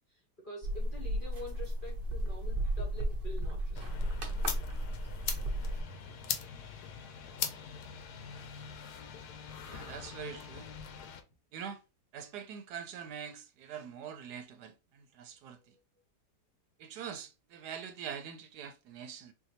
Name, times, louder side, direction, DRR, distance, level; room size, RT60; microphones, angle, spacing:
voice 1, 0.1-4.9, left 1 dB, 40° left, 0.8 m, -48 dB
sound 1, 0.6-5.8, right 1 dB, 50° right, 0.7 m, -34 dB
sound 2, 3.7-11.2, left 7 dB, 75° left, 1.1 m, -41 dB
voice 2, 9.7-10.7 11.5-11.8 12.1-15.7 16.8-19.3, right 8 dB, 75° right, 1.1 m, -44 dB
4.0 x 2.7 x 2.8 m
omnidirectional pair, 1.8 m